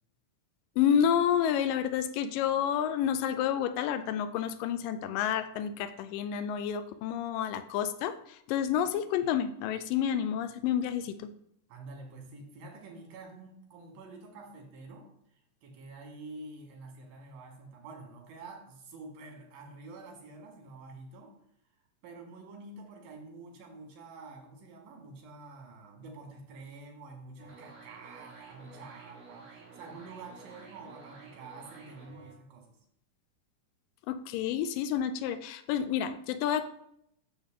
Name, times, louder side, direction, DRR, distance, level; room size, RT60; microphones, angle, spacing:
voice 1, 0.8-11.3 34.1-36.7, left 9 dB, 85° left, 10 dB, 2.2 m, -29 dB
voice 2, 11.7-15.1 15.6-21.3 22.0-32.8, right 3 dB, 90° right, 1 dB, 3.4 m, -48 dB
sound 1, 27.4-32.3, right 4 dB, 50° right, 3.4 m, -51 dB
7.0 x 6.5 x 3.6 m, 0.73 s
omnidirectional pair, 3.9 m